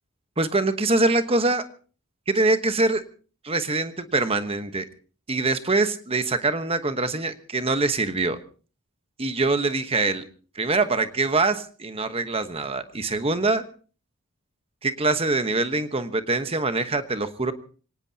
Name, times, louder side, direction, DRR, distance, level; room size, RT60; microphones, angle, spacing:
voice 1, 0.4-1.6 2.3-3.0 3.4-4.8 5.3-8.4 9.2-10.2 10.5-13.6 14.8-17.5, right 3 dB, 25° right, 10 dB, 1.1 m, -24 dB
25.0 x 18.0 x 2.8 m, 0.39 s
head